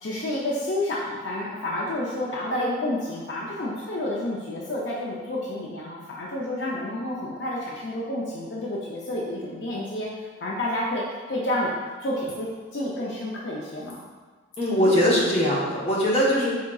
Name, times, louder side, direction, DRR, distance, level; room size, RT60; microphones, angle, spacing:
voice 1, 0.0-10.1 10.4-11.0 11.3-11.7 12.0-14.0, left 1 dB, 60° left, -4 dB, 0.5 m, -29 dB
voice 2, 14.6-16.5, equal, 30° left, -6 dB, 0.9 m, -21 dB
4.9 x 3.7 x 2.3 m, 1.4 s
head